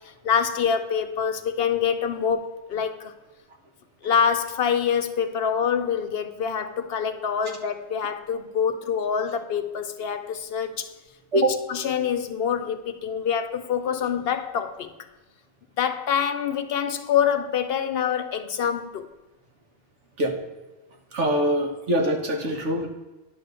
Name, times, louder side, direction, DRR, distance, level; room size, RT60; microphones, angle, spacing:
voice 1, 0.2-3.1 4.0-10.9 11.3-14.9 15.8-19.1, left 7 dB, 65° left, 8 dB, 0.8 m, -25 dB
voice 2, 21.1-22.9, right 1 dB, 80° right, 2 dB, 1.5 m, -23 dB
10.0 x 3.4 x 6.6 m, 1.1 s
omnidirectional pair, 1.2 m